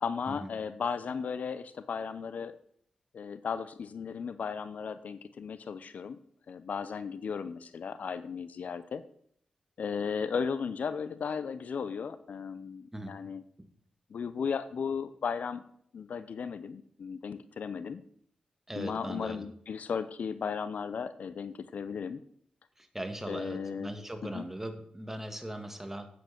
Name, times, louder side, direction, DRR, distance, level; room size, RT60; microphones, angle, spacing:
voice 1, 0.0-2.5 3.1-6.2 6.5-9.0 9.8-13.4 14.1-15.6 15.9-18.0 18.8-22.2 23.3-23.9 24.2-24.5, left 6 dB, 70° left, 14 dB, 0.7 m, -35 dB
voice 2, 18.7-19.5 22.8-26.1, right 1 dB, 15° right, 7 dB, 2.0 m, -39 dB
9.2 x 8.0 x 6.0 m, 0.65 s
cardioid pair, 50°, 3 cm